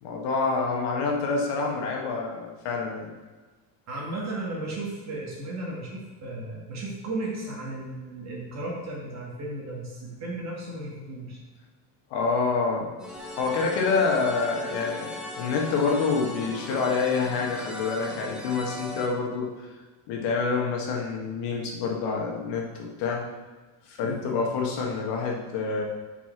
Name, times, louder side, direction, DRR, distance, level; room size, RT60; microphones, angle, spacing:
voice 1, 0.0-3.1 12.1-12.9 13.4-19.7 20.1-23.2 23.9-25.8, left 4 dB, 65° left, 0 dB, 1.6 m, -27 dB
voice 2, 3.9-11.4 24.0-24.4, right 2 dB, 35° right, -3 dB, 2.1 m, -35 dB
sound 1, 13.0-19.1, left 1 dB, ahead, 1.0 m, -38 dB
5.9 x 5.7 x 6.0 m, 1.3 s
cardioid pair, 155°, 46 cm